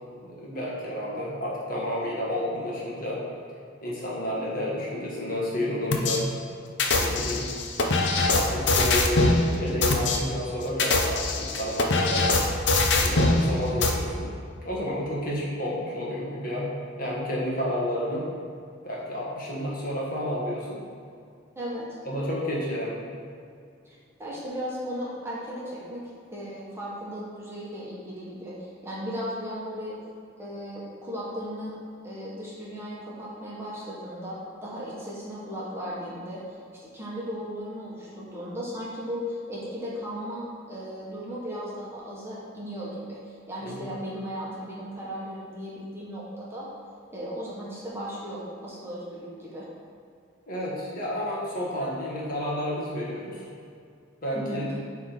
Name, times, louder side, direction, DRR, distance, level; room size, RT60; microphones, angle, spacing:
voice 1, 0.1-3.2 3.8-6.3 7.0-7.5 8.3-12.3 13.0-14.3 14.6-16.7 17.0-18.3 18.8-20.8 22.1-23.0 43.6-43.9 50.5-53.4 54.2-54.7, equal, 45° left, -5 dB, 1.6 m, -30 dB
sound 1, 5.9-6.2 6.8-9.4 9.8-10.2 10.7-13.4 13.8-13.9, left 3 dB, 60° left, 0.7 m, -22 dB
voice 2, 21.5-22.0 23.8-26.0 26.3-29.9 30.4-31.7 32.0-34.4 34.6-36.6 36.9-46.7 47.1-49.7 54.3-54.6, equal, 15° right, -7 dB, 1.4 m, -36 dB
11.0 x 3.7 x 4.7 m, 2.3 s
head